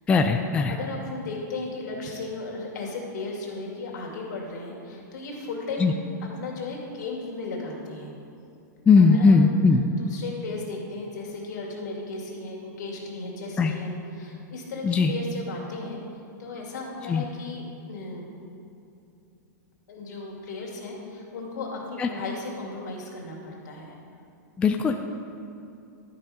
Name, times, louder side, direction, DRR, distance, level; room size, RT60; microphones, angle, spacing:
voice 1, 0.1-0.8 5.8-5.9 8.9-9.8 13.6-13.7 14.8-15.1 17.1-17.2 22.0-22.1 24.6-25.0, left 4 dB, 10° left, 4 dB, 0.3 m, -19 dB
voice 2, 0.7-5.8 6.4-8.1 9.0-9.5 10.0-16.0 16.4-18.3 19.9-24.0, left 3 dB, 65° left, -2 dB, 2.3 m, -35 dB
12.0 x 5.5 x 5.0 m, 2.7 s
hypercardioid pair, 145°, 10 cm